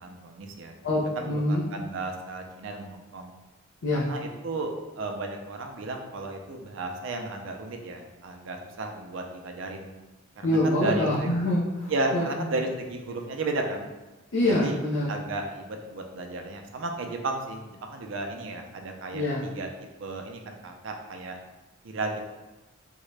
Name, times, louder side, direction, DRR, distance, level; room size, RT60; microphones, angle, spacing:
voice 1, 0.0-0.8 1.2-3.3 3.9-9.9 10.4-11.3 11.9-13.9 14.5-14.8 15.1-19.7 20.0-21.4 21.8-22.2, right 2 dB, 60° right, 3 dB, 0.4 m, -34 dB
voice 2, 0.8-1.6 3.8-4.1 10.4-12.3 14.3-15.1 19.1-19.4, left 1 dB, 65° left, -5 dB, 0.5 m, -25 dB
3.7 x 2.1 x 3.2 m, 1.1 s
head